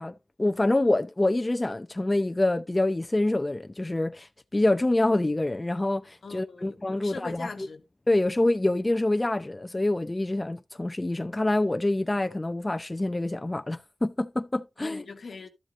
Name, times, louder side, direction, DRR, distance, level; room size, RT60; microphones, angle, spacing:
voice 1, 0.0-7.5 8.1-15.0, left 2 dB, 30° left, 0.7 m, -26 dB
voice 2, 6.2-7.8 14.8-15.5, left 4 dB, 80° left, 1.3 m, -41 dB
12.5 x 7.2 x 2.6 m
cardioid pair, 45°, 0 cm